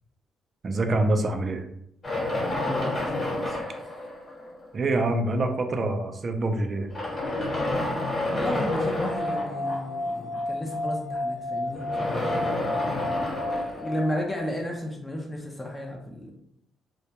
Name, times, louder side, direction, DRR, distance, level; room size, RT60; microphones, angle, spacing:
voice 1, 0.6-1.6 4.7-6.9, right 2 dB, 40° right, 5 dB, 0.4 m, -25 dB
sound 1, 2.0-4.7 5.6-5.7 6.8-9.8 11.7-14.7, left 1 dB, 35° left, 1.0 m, -30 dB
voice 2, 2.5-3.6 8.3-12.5 13.5-16.3, left 1 dB, 20° left, 0 dB, 0.5 m, -33 dB
sound 2, 8.4-11.8 12.1-12.2, left 2 dB, 75° left, 0.8 m, -41 dB
sound 3, 9.1-14.6, left 1 dB, 60° right, 0.9 m, -32 dB
2.2 x 2.1 x 2.8 m, 0.75 s
cardioid pair, 90°, 0 cm